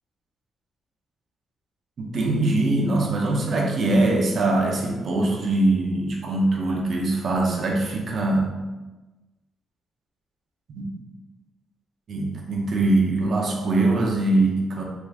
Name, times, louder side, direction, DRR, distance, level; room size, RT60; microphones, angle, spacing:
voice 1, 2.0-8.5 10.7-10.9 12.1-14.8, right 2 dB, 50° right, 0 dB, 0.7 m, -22 dB
3.4 x 2.9 x 2.4 m, 1.1 s
cardioid pair, 105°, 0 cm